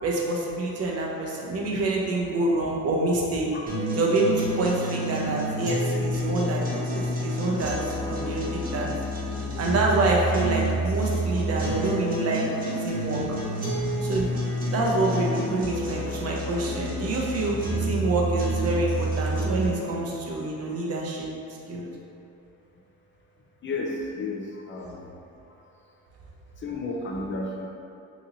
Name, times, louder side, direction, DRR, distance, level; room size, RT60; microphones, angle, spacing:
voice 1, 0.0-3.5 3.9-7.8 8.1-8.9 9.6-12.4 12.8-13.2 14.0-14.4 14.7-21.3 21.7-21.9, right 2 dB, 45° right, -2 dB, 0.7 m, -27 dB
sound 1, 3.7-19.7, right 1 dB, 25° right, 1.0 m, -29 dB
voice 2, 23.6-25.1 25.5-25.7 26.6-27.7, left 2 dB, 35° left, -2 dB, 0.5 m, -33 dB
2.9 x 2.7 x 3.9 m, 2.6 s
cardioid pair, 100°, 33 cm